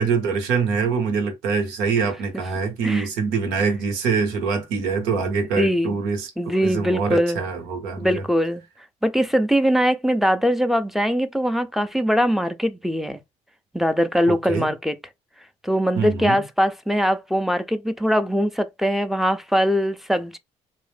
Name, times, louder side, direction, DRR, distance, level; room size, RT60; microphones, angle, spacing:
voice 1, 0.0-8.2 14.3-14.7 16.0-16.4, right 5 dB, 85° right, 0.9 m, -24 dB
voice 2, 5.6-6.0 6.4-7.4 8.0-8.6 9.0-13.2 13.7-15.0 15.6-20.4, equal, ahead, 0.5 m, -21 dB
2.5 x 2.0 x 3.3 m
supercardioid pair, 65°, 15 cm